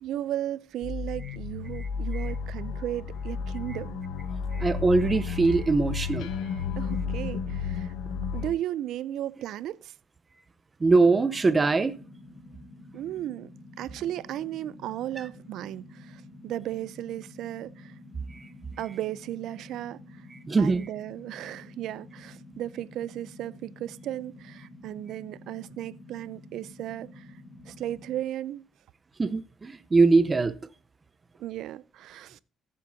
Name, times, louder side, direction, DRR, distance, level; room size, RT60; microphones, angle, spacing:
voice 1, 0.0-4.0 6.8-7.9 8.3-9.9 12.9-13.5 13.8-17.9 18.8-20.3 20.6-27.3 27.7-28.7 31.4-32.4, right 12 dB, 75° right, 0.4 m, -35 dB
sound 1, 0.8-8.5, left 5 dB, 90° left, 1.2 m, -32 dB
voice 2, 4.5-6.3 10.8-11.9 18.3-18.5 20.5-20.8 29.2-30.6, right 3 dB, 25° right, 0.7 m, -22 dB
sound 2, 11.0-28.2, left 2 dB, 55° left, 4.7 m, -49 dB
15.0 x 7.7 x 2.7 m
cardioid pair, 120°, 0 cm